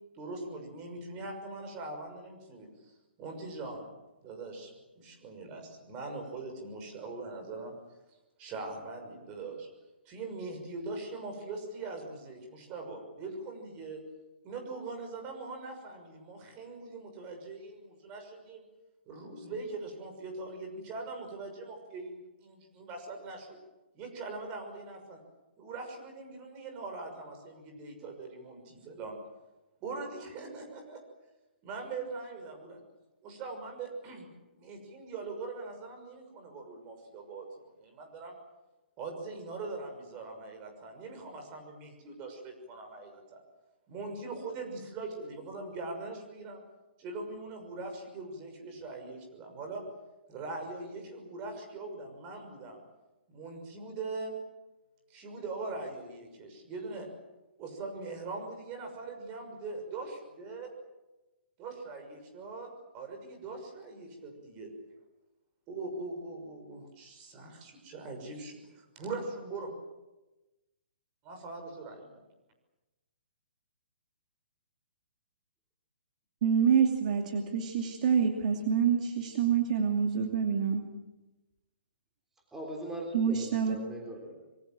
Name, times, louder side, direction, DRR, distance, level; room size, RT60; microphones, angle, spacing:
voice 1, 0.1-2.9 3.2-3.9 4.2-7.7 8.4-9.7 10.0-14.0 14.4-18.6 19.1-23.6 23.9-25.2 25.6-29.2 29.8-31.0 31.6-32.8 33.2-34.3 34.5-38.4 39.0-43.4 43.9-46.6 47.0-49.8 50.3-52.8 53.3-54.3 55.1-57.1 57.6-60.7 61.6-64.7 65.7-69.7 71.2-72.2, right 3 dB, 20° right, 4 dB, 6.2 m, -41 dB
voice 2, 76.4-80.8 83.1-83.8, right 7 dB, 45° right, 3 dB, 2.6 m, -27 dB
voice 3, 82.5-84.4, right 1 dB, 5° right, 0 dB, 3.5 m, -40 dB
26.0 x 23.5 x 7.7 m, 1.1 s
hypercardioid pair, 165°, 6 cm